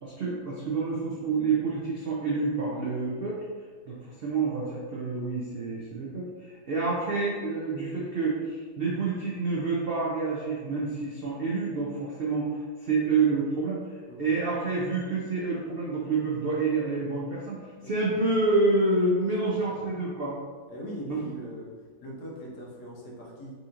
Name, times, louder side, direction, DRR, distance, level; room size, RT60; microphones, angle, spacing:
voice 1, 0.0-3.4 3.9-20.3 21.1-21.3, right 3 dB, 75° right, -6 dB, 0.5 m, -28 dB
voice 2, 19.4-19.9 20.7-21.7 22.0-23.5, equal, 70° left, -4 dB, 1.4 m, -41 dB
4.1 x 2.8 x 2.5 m, 1.5 s
omnidirectional pair, 1.8 m